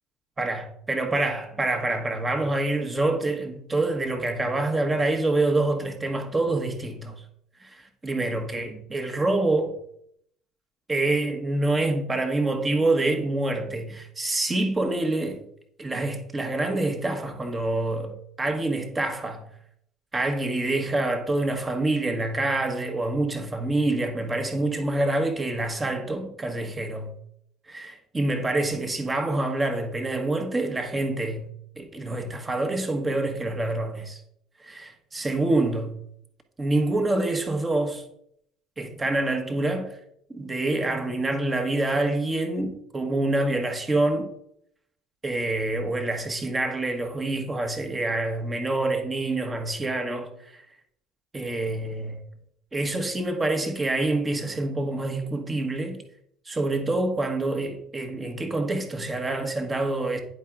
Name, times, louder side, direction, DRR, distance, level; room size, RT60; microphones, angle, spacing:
voice 1, 0.4-7.2 7.6-9.7 10.9-15.4 15.8-19.4 20.1-27.1 27.7-31.5 31.8-34.2 34.6-35.9 36.6-38.0 38.8-40.0 40.3-44.3 45.2-50.6 51.3-52.2 52.7-56.0 56.4-60.2, right 2 dB, 20° right, 1.3 m, -26 dB
9.9 x 4.7 x 3.6 m
figure-of-eight pair, 60°, 0 cm